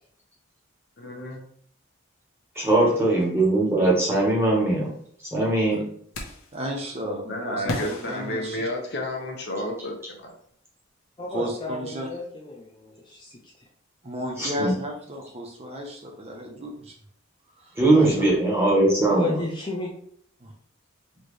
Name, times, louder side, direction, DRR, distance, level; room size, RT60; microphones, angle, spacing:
voice 1, 1.0-1.5 7.3-10.3, left 1 dB, 50° left, 2 dB, 0.8 m, -31 dB
voice 2, 2.5-4.9 5.3-5.9 14.4-14.7 17.8-19.3, right 2 dB, 10° right, -4 dB, 1.3 m, -20 dB
sound 1, 6.1-6.6 7.7-9.2, left 1 dB, 80° left, 0.9 m, -35 dB
voice 3, 6.5-8.7 11.3-12.1 14.0-16.9 17.6-18.2 20.4-20.5, equal, 30° right, 1 dB, 0.6 m, -34 dB
voice 4, 11.2-13.7 19.1-19.9, left 3 dB, 20° left, -3 dB, 0.5 m, -33 dB
4.2 x 3.1 x 3.2 m, 0.63 s
head